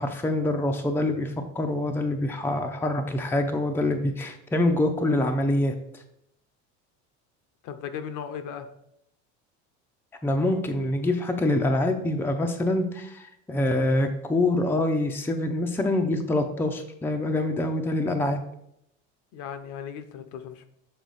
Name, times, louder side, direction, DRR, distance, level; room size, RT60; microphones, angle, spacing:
voice 1, 0.0-5.7 10.2-18.4, left 1 dB, 5° left, 4 dB, 0.6 m, -25 dB
voice 2, 7.6-8.7 19.3-20.6, left 8 dB, 60° left, 8 dB, 0.8 m, -36 dB
6.5 x 4.0 x 4.0 m, 0.77 s
supercardioid pair, 115°, 35 cm